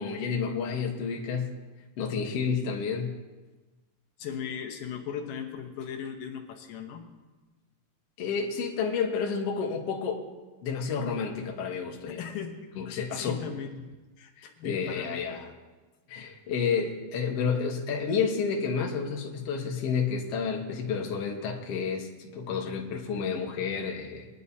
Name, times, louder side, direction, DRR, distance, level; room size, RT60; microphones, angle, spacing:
voice 1, 0.0-1.6 2.0-3.1 8.2-10.2 10.6-12.2 12.8-13.4 14.4-15.5 16.1-24.3, left 6 dB, 55° left, 0 dB, 2.1 m, -30 dB
voice 2, 4.2-7.0 12.1-13.7 14.2-15.2, left 7 dB, 80° left, 3 dB, 2.7 m, -38 dB
21.5 x 11.0 x 2.8 m, 1.2 s
omnidirectional pair, 3.9 m